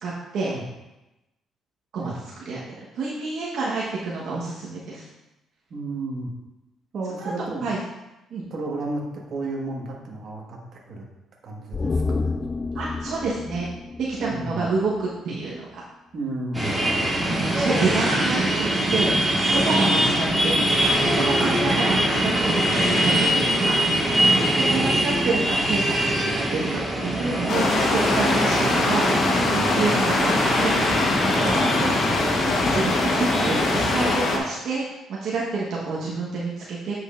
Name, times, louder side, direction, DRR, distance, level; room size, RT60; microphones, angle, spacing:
voice 1, 0.0-0.5 1.9-2.1 2.4-5.1 7.2-7.3 7.6-7.8 8.3-8.4 12.7-13.7 14.0-15.8 17.5-19.1 19.5-20.7 21.1-23.8 24.5-29.1 29.5-30.7 32.6-36.9, right 3 dB, 70° right, -6 dB, 1.2 m, -28 dB
voice 2, 5.7-6.3 6.9-7.7 8.5-11.0 11.4-12.4 14.2-14.7 16.1-16.9 19.8-20.0 24.7-25.0 29.7-29.9 31.4-32.6 33.4-33.9, right 2 dB, 55° right, -1 dB, 1.5 m, -33 dB
sound 1, 11.7-15.1 15.4-15.5, left 3 dB, 30° left, 0.3 m, -30 dB
sound 2, 16.5-34.2, right 1 dB, 10° right, 2.1 m, -23 dB
sound 3, 27.5-34.4, left 3 dB, 60° left, 1.1 m, -23 dB
8.1 x 6.2 x 2.5 m, 0.98 s
cardioid pair, 105°, 0 cm